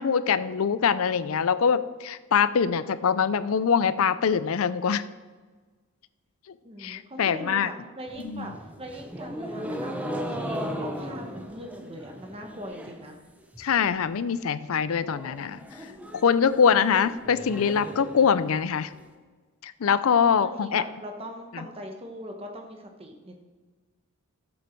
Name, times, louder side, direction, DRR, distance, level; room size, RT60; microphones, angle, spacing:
voice 1, 0.0-5.0 6.8-7.7 8.2-8.5 13.6-15.8 16.1-18.9 19.6-20.8 21.5-21.6, left 6 dB, 70° left, 15 dB, 0.4 m, -23 dB
voice 2, 6.6-8.5 8.8-13.2 20.4-23.4, equal, 25° right, 3 dB, 1.2 m, -41 dB
sound 1, 8.1-13.1 13.4-13.9 14.2-14.3 14.6-14.7 15.0-19.0, equal, 5° right, 0.7 m, -37 dB
13.5 x 7.8 x 4.5 m, 1.4 s
head